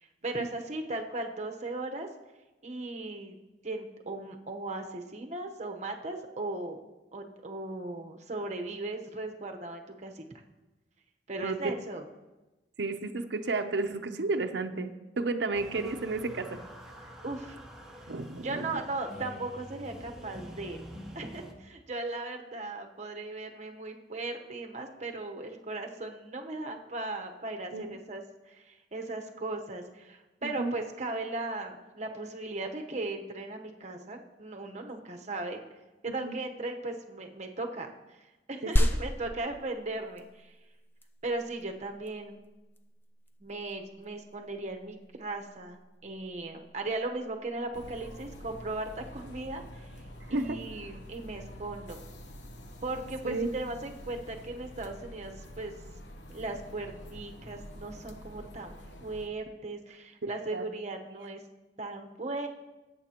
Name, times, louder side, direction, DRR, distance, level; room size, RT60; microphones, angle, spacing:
voice 1, 0.0-2.1 2.6-3.4 3.6-6.8 7.1-10.2 11.3-12.0 17.2-17.6 18.4-20.8 21.1-35.6 36.0-40.5 41.2-42.4 43.4-49.9 50.3-52.0 52.8-55.7 56.3-61.4 61.8-62.5, right 2 dB, 40° right, 4 dB, 1.0 m, -37 dB
voice 2, 12.8-16.6 18.1-18.7 27.7-27.9 30.4-30.7 36.1-36.4 38.6-38.9 50.3-50.6 53.2-53.5 60.2-60.7, right 3 dB, 70° right, 6 dB, 0.7 m, -32 dB
sound 1, 15.5-21.5, equal, 5° right, 1.2 m, -47 dB
sound 2, 38.8-48.7, equal, 10° left, 0.6 m, -35 dB
sound 3, 47.7-59.3, equal, 90° left, 1.0 m, -47 dB
17.5 x 8.4 x 2.9 m, 1.1 s
head